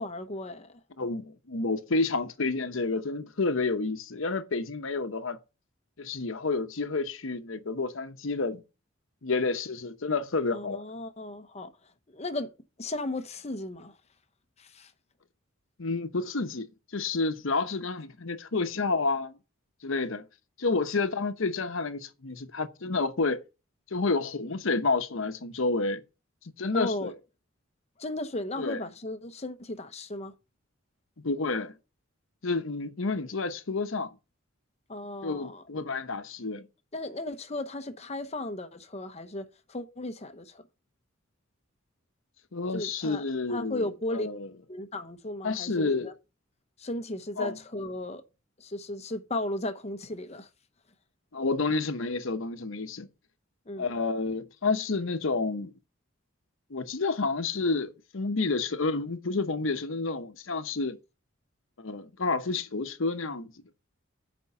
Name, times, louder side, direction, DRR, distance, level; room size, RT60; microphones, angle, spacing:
voice 1, 0.0-0.8 10.5-12.5 12.8-14.0 14.6-14.9 26.7-27.1 28.0-30.3 34.9-35.6 36.9-40.6 42.7-43.2 43.5-44.3 44.7-46.1 46.8-48.2 48.6-50.5 53.7-54.0, left 1 dB, 30° left, 0.8 m, -35 dB
voice 2, 1.0-5.4 6.0-8.6 9.2-10.8 15.8-19.4 19.8-20.3 20.6-23.4 23.9-26.0 26.6-27.1 28.6-28.8 31.2-31.8 32.4-34.1 35.2-36.7 42.5-44.5 45.4-46.1 47.4-47.6 51.3-53.1 53.8-55.7 56.7-61.0 61.8-63.5, left 3 dB, 70° left, 0.9 m, -30 dB
8.2 x 5.2 x 6.6 m
head